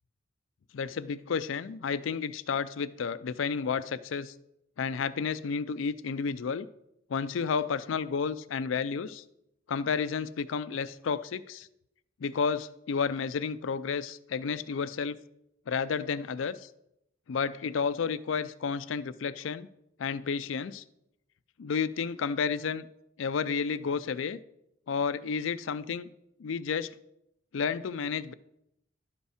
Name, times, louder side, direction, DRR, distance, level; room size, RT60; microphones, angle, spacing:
voice 1, 0.7-4.3 4.8-6.7 7.1-9.2 9.7-11.7 12.2-15.2 15.7-16.7 17.3-19.7 20.0-20.8 21.6-22.9 23.2-24.4 24.9-26.1 26.4-26.9 27.5-28.3, left 6 dB, 75° left, 15 dB, 0.4 m, -31 dB
11.0 x 5.3 x 4.9 m, 0.80 s
head